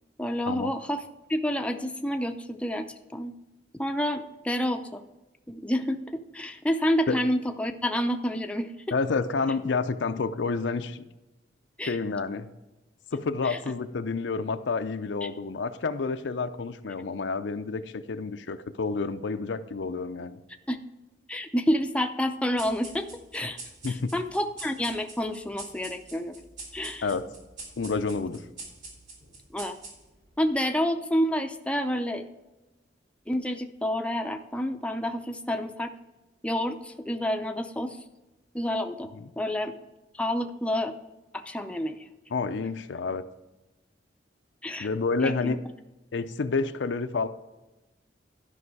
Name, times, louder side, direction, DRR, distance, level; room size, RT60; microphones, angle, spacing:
voice 1, 0.2-1.0 1.3-3.3 3.8-5.0 5.5-8.7 11.8-12.0 13.1-13.6 15.2-15.3 20.7-20.8 21.3-23.1 23.3-23.6 23.9-26.4 26.7-27.1 29.5-29.8 30.4-32.2 33.3-35.9 36.4-38.0 38.5-39.1 39.4-39.7 40.2-40.9 41.3-42.0 44.6-44.9 45.2-45.6, equal, 5° left, 6 dB, 0.5 m, -29 dB
voice 2, 8.9-11.0 11.8-12.5 13.1-20.4 23.8-24.1 27.0-27.3 27.8-28.4 39.1-39.3 42.3-43.2 44.8-45.6 46.1-47.3, left 4 dB, 75° left, 10 dB, 0.5 m, -29 dB
sound 1, 22.6-30.3, right 3 dB, 45° right, 3.1 m, -45 dB
12.0 x 5.4 x 4.8 m, 1.0 s
head